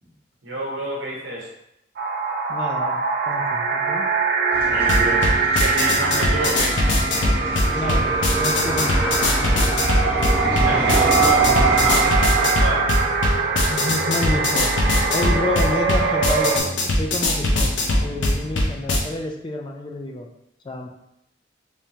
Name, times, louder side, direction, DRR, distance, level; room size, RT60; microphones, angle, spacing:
voice 1, 0.4-1.5 4.7-5.3 5.6-6.8 10.6-12.8, right 1 dB, 75° right, -3 dB, 0.9 m, -28 dB
sound 1, 2.0-16.6, right 4 dB, 55° right, 0.4 m, -22 dB
voice 2, 2.5-3.0 3.3-4.0 7.7-8.1 8.3-9.8 13.7-14.7 15.1-17.7 18.0-20.3 20.6-20.9, left 2 dB, 25° left, 2 dB, 0.3 m, -29 dB
sound 2, 4.5-12.1, equal, 30° right, 1.4 m, -28 dB
sound 3, 4.8-19.0, left 1 dB, 70° left, 0.6 m, -22 dB
3.4 x 2.9 x 2.8 m, 0.80 s
head